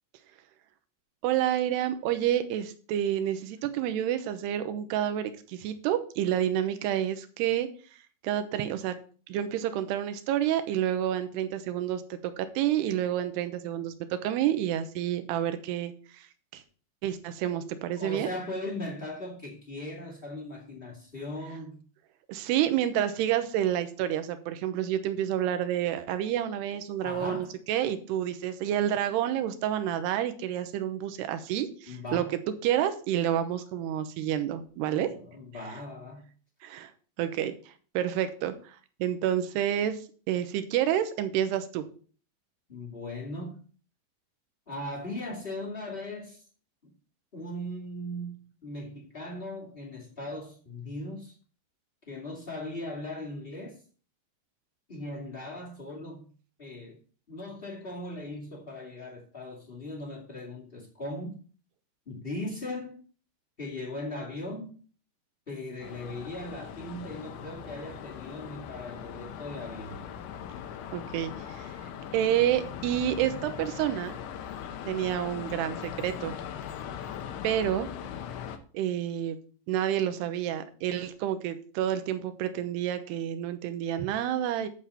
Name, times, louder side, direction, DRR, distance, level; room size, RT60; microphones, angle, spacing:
voice 1, 1.2-7.7 8.2-8.9 9.3-16.3 16.5-16.6 17.0-18.3 22.3-32.2 32.6-35.1 36.6-36.9 37.2-40.0 40.3-41.8 70.9-71.7 72.1-74.2 74.9-76.4 77.4-77.9 78.7-79.4 79.7-84.7, right 11 dB, 75° right, 2.8 m, -29 dB
voice 2, 18.0-21.8 27.0-27.5 31.9-32.3 35.0-36.3 42.7-43.6 44.7-46.4 46.8-46.9 47.3-51.3 52.1-53.8 54.9-56.3 56.6-57.0 57.3-61.4 62.0-63.0 63.6-64.7 65.5-70.1, left 1 dB, 25° left, 1.1 m, -38 dB
sound 1, 65.8-78.6, left 8 dB, 90° left, 3.4 m, -40 dB
10.0 x 7.2 x 4.3 m
omnidirectional pair, 5.2 m